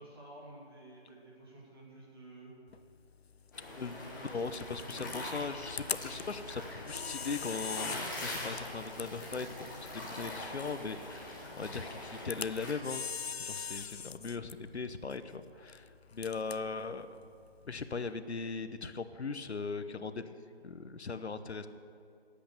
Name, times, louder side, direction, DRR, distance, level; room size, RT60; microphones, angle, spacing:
voice 1, 0.0-2.5 4.0-5.5, right 1 dB, 20° right, -7 dB, 3.1 m, -52 dB
Camera, 2.7-18.2, left 7 dB, 70° left, 0.5 m, -44 dB
sound 1, 3.5-12.7, left 1 dB, 20° left, 1.6 m, -43 dB
voice 2, 3.8-9.7 9.9-11.2 11.6-13.1 13.4-15.9 16.1-17.1 17.7-20.3 20.6-21.7, left 4 dB, 85° left, 11 dB, 1.0 m, -39 dB
17.0 x 8.6 x 6.9 m, 2.4 s
figure-of-eight pair, 175°, 32 cm